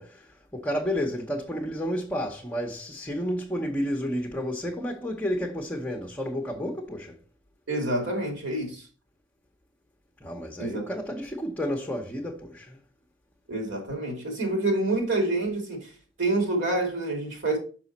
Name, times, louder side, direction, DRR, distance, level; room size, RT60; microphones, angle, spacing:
voice 1, 0.0-7.2 10.2-12.8, equal, 5° left, 0.9 m, -31 dB
voice 2, 7.7-8.9 10.6-10.8 13.5-15.9 16.2-17.6, right 2 dB, 65° right, 2.7 m, -27 dB
5.9 x 5.5 x 4.1 m
head